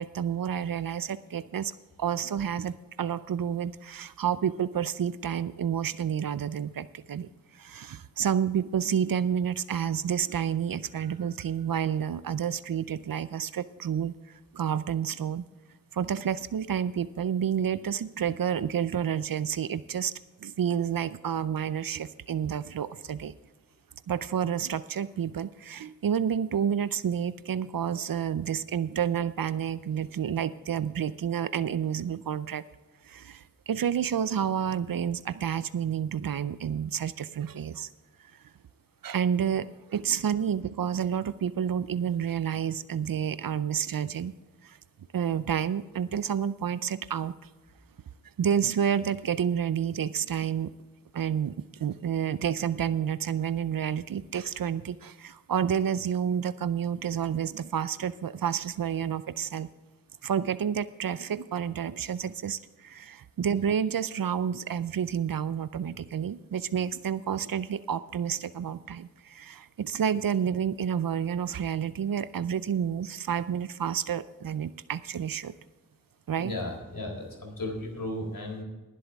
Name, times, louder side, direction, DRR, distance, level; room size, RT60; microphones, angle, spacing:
voice 1, 0.0-15.4 15.9-20.1 20.4-23.3 24.1-32.6 33.0-37.9 39.0-44.3 44.6-44.8 45.1-47.3 48.4-50.7 51.1-51.5 51.8-59.7 60.2-75.5 76.3-76.5, right 8 dB, 75° right, 15 dB, 0.5 m, -29 dB
voice 2, 76.3-78.6, left 1 dB, 80° left, 1 dB, 4.1 m, -35 dB
20.5 x 7.8 x 3.5 m, 1.2 s
wide cardioid pair, 45°, 34 cm